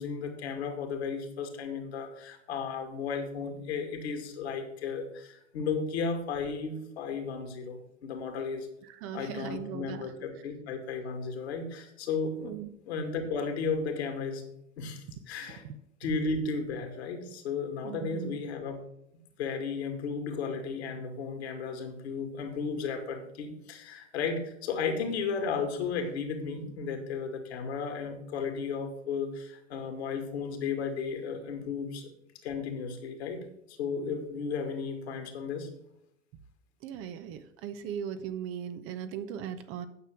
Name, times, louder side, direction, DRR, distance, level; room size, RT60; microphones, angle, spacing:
voice 1, 0.0-8.7 9.1-12.5 12.9-14.5 14.8-15.6 16.0-18.8 19.4-32.1 32.4-35.7, left 5 dB, 60° left, 5 dB, 2.2 m, -34 dB
voice 2, 8.9-10.3 12.4-12.7 15.6-15.7 17.8-18.4 36.8-39.9, right 8 dB, 35° right, 10 dB, 0.8 m, -38 dB
9.5 x 6.8 x 6.2 m, 0.77 s
figure-of-eight pair, 85°, 37 cm